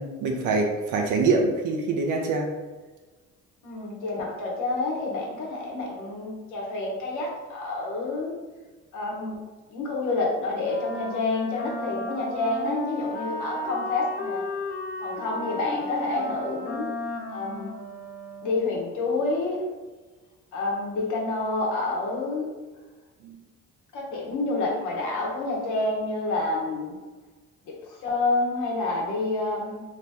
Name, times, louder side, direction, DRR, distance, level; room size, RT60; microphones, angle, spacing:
voice 1, 0.0-2.5 23.2-23.4, right 3 dB, 80° right, 1 dB, 0.5 m, -24 dB
voice 2, 3.6-8.3 8.9-9.4 9.7-14.5 15.0-16.9 17.3-17.7 18.4-19.6 20.5-22.5 23.9-27.0 27.6-29.8, left 2 dB, 80° left, -2 dB, 1.0 m, -28 dB
Wind instrument woodwind instrument, 10.6-18.9, left 2 dB, 35° left, 0.7 m, -35 dB
2.8 x 2.8 x 3.3 m, 1.3 s
cardioid pair, 90°, 30 cm